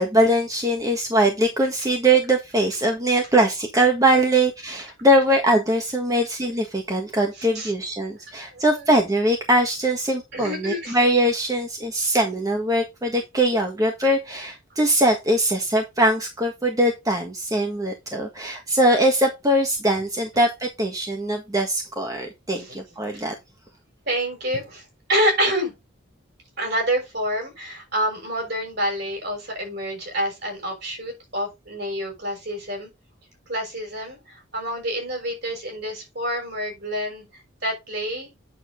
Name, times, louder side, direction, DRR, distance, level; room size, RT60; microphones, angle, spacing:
voice 1, 0.0-23.3, right 1 dB, 15° right, 1.5 m, -21 dB
voice 2, 7.4-7.7 8.5-8.8 10.3-11.0 22.5-22.7 23.1-23.2 24.1-25.7 26.6-32.9 33.5-38.3, equal, 55° right, 6.4 m, -27 dB
9.2 x 7.0 x 3.8 m
head